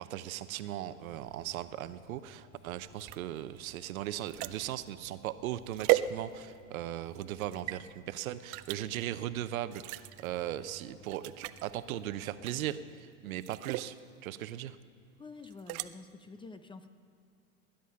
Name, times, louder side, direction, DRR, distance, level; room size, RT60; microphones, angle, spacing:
voice 1, 0.0-14.0 14.2-14.8, right 12 dB, 75° right, 13 dB, 0.8 m, -38 dB
sound 1, 0.9-12.7, left 1 dB, 50° left, 2.1 m, -58 dB
sound 2, 3.0-6.7 7.2-7.8 8.5-8.8 9.7-10.3 10.7-10.8 11.1-11.6 12.4-12.8 13.3-13.9 15.4-15.9, right 16 dB, 50° right, 0.6 m, -35 dB
voice 2, 15.2-16.9, left 4 dB, 10° left, 10 dB, 0.6 m, -48 dB
19.5 x 10.5 x 5.7 m, 2.5 s
hypercardioid pair, 105°, 42 cm